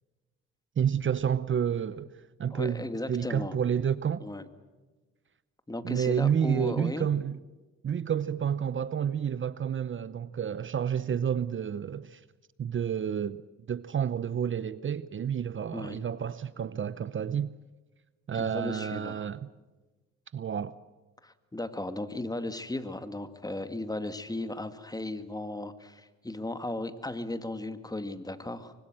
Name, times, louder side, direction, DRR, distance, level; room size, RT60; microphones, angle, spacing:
voice 1, 0.8-2.1 2.4-4.2 5.8-7.4 7.8-12.2 12.6-13.4 13.7-17.5 18.3-19.5 20.3-20.8, right 8 dB, 40° right, 0.8 m, -30 dB
voice 2, 2.5-3.5 4.2-4.4 5.7-7.1 15.7-16.0 18.3-19.3 21.2-28.7, left 2 dB, 10° left, 2.1 m, -36 dB
25.0 x 24.5 x 7.6 m
cardioid pair, 90°, 30 cm